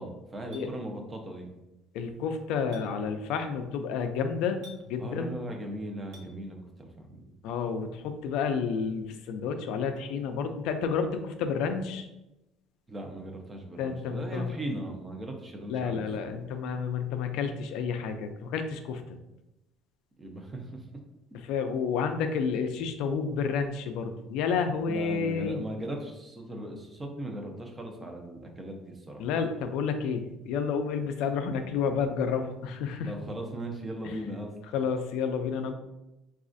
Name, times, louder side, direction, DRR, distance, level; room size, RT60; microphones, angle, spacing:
voice 1, 0.0-1.5 5.0-7.3 12.9-16.1 20.2-20.9 24.9-29.2 33.1-34.5, right 1 dB, 15° right, 3 dB, 0.5 m, -38 dB
Chink clink, 0.5-0.7 2.7-2.9 4.6-4.8 6.1-6.3, left 1 dB, 65° right, 0.7 m, -49 dB
voice 2, 1.9-5.3 7.4-12.1 13.8-14.5 15.7-19.0 21.3-25.6 29.2-33.1 34.0-34.1 34.7-35.7, left 6 dB, 75° left, 7 dB, 0.3 m, -30 dB
4.0 x 2.3 x 2.5 m, 0.94 s
cardioid pair, 150°, 0 cm